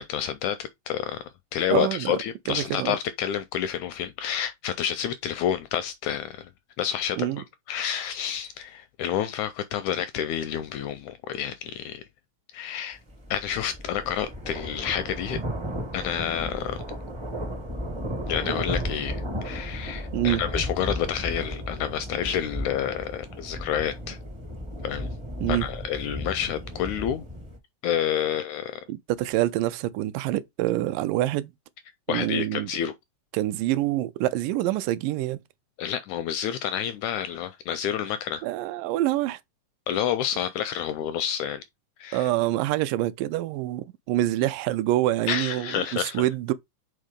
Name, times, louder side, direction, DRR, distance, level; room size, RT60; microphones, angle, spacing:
voice 1, 0.0-6.5 6.8-12.0 12.5-13.0 13.3-15.4 15.9-16.8 18.3-24.2 24.8-25.1 25.5-27.2 27.8-28.9 32.1-32.9 35.8-38.5 39.9-41.6 42.0-42.3 45.3-46.3, left 9 dB, 80° left, 1.7 m, -29 dB
voice 2, 1.7-2.2 2.5-3.0 7.2-7.4 20.1-20.4 25.4-25.7 28.9-31.5 32.1-32.7 33.3-35.4 38.4-39.4 42.1-46.5, right 15 dB, 85° right, 2.2 m, -26 dB
sound 1, 13.1-27.6, equal, 30° right, 0.5 m, -34 dB
5.5 x 3.9 x 5.0 m
omnidirectional pair, 3.8 m